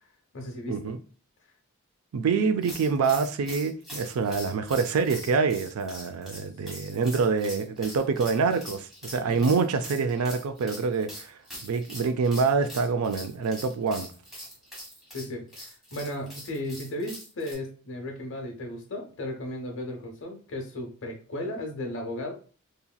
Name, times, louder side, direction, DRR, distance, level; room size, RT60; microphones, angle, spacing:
voice 1, 0.3-1.0 9.3-9.5 15.1-22.3, left 1 dB, 60° left, 0.8 m, -35 dB
voice 2, 2.1-14.1, right 5 dB, 75° right, 0.4 m, -26 dB
sound 1, 2.6-17.5, equal, ahead, 1.3 m, -43 dB
2.9 x 2.8 x 2.2 m
head